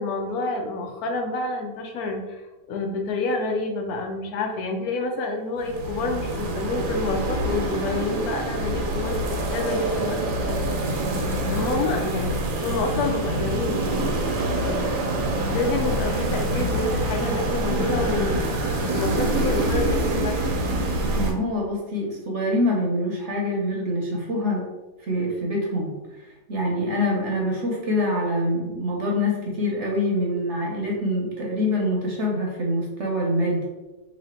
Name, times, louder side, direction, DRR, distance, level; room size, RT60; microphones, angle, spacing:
voice 1, 0.0-2.4 2.7-10.7 11.2-14.1 14.5-14.9 15.5-18.5 18.8-20.4, left 3 dB, 75° left, 3 dB, 1.0 m, -28 dB
sound 1, 5.6-21.3, right 1 dB, 80° right, 1.3 m, -26 dB
voice 2, 21.1-24.6 25.1-25.9 26.5-33.7, left 1 dB, 55° right, -2 dB, 0.9 m, -25 dB
3.1 x 2.7 x 4.2 m, 1.1 s
omnidirectional pair, 1.7 m